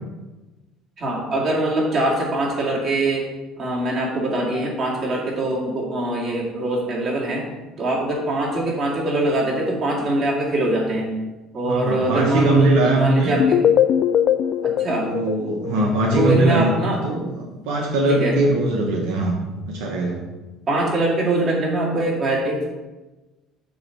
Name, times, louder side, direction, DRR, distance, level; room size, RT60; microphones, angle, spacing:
voice 1, 1.0-3.3 3.6-7.4 7.8-11.2 11.5-13.6 14.6-15.1 16.1-17.0 18.1-18.4 20.7-22.7, right 1 dB, 40° right, -4 dB, 2.5 m, -23 dB
voice 2, 11.6-13.3 15.0-19.4 19.7-20.2, right 2 dB, 85° right, -1 dB, 1.2 m, -21 dB
sound 1, 13.4-16.3, left 9 dB, 55° left, 0.3 m, -20 dB
8.4 x 3.2 x 6.4 m, 1.1 s
cardioid pair, 110°, 0 cm